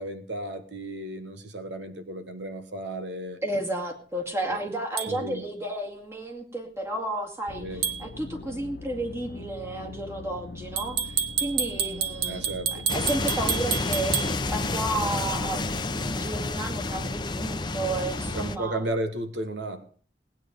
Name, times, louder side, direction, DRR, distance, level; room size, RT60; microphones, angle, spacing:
voice 1, 0.0-3.4 4.5-4.6 5.1-5.4 7.6-7.9 12.3-12.9 18.3-19.9, right 1 dB, 85° right, 9 dB, 1.4 m, -34 dB
voice 2, 3.4-18.8, right 1 dB, 15° right, 1 dB, 2.2 m, -32 dB
sound 1, 5.0-5.1 7.8-8.0 10.8-14.3, right 7 dB, 60° right, 1.1 m, -28 dB
sound 2, 7.5-16.1, left 4 dB, 60° left, 0.6 m, -42 dB
sound 3, 12.9-18.6, left 2 dB, 25° left, 0.7 m, -30 dB
18.5 x 9.2 x 5.2 m, 0.43 s
head